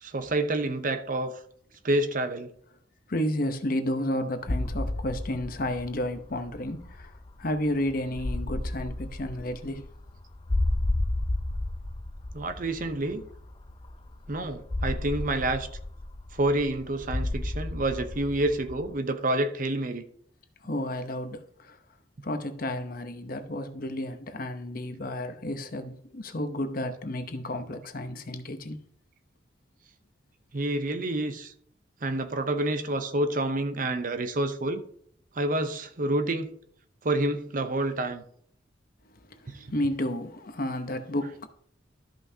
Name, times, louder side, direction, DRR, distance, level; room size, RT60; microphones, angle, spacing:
voice 1, 0.0-1.4 1.8-2.5 12.3-13.2 14.3-15.7 16.3-20.0 30.5-31.5 32.0-34.8 35.3-36.5 37.0-38.2 39.5-40.0, right 1 dB, 45° right, 0.8 m, -28 dB
voice 2, 3.1-7.1 7.4-9.8 20.6-21.8 22.2-28.8 39.1-41.5, left 1 dB, 50° left, 0.8 m, -32 dB
sound 1, 4.4-18.9, left 1 dB, 25° left, 0.5 m, -32 dB
13.5 x 5.6 x 2.8 m
head